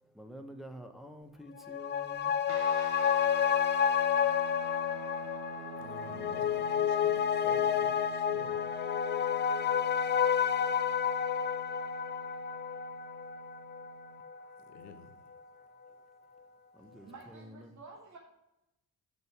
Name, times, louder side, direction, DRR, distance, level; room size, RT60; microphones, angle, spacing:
voice 1, 0.0-2.9 5.8-6.6 14.7-15.0 16.7-17.7, equal, ahead, 5 dB, 1.0 m, -50 dB
sound 1, 1.6-14.4 14.8-14.9, left 8 dB, 25° left, 0.3 m, -30 dB
sound 2, 2.5-14.2, right 10 dB, 55° right, 0.8 m, -48 dB
voice 2, 6.0-8.5 14.7-15.1, left 6 dB, 75° left, 8 dB, 0.9 m, -51 dB
voice 3, 17.1-18.2, right 3 dB, 35° right, 0 dB, 1.3 m, -50 dB
7.5 x 5.3 x 4.6 m, 0.89 s
figure-of-eight pair, 40°, 47 cm